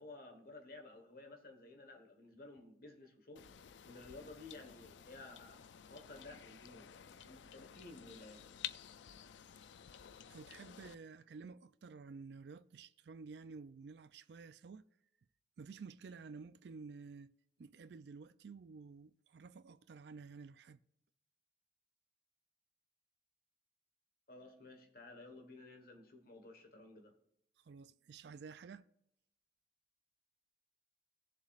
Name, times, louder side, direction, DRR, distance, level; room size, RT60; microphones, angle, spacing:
voice 1, 0.0-3.5 3.8-5.6 5.9-8.4 24.3-27.1, left 2 dB, 55° left, 1.3 m, -54 dB
newjersey OC goldfish mono, 3.4-11.0, left 10 dB, 85° left, 0.4 m, -52 dB
voice 2, 10.3-14.8 15.6-17.3 17.6-20.8 27.6-28.9, right 4 dB, 70° right, 0.4 m, -52 dB
18.0 x 7.2 x 2.5 m
head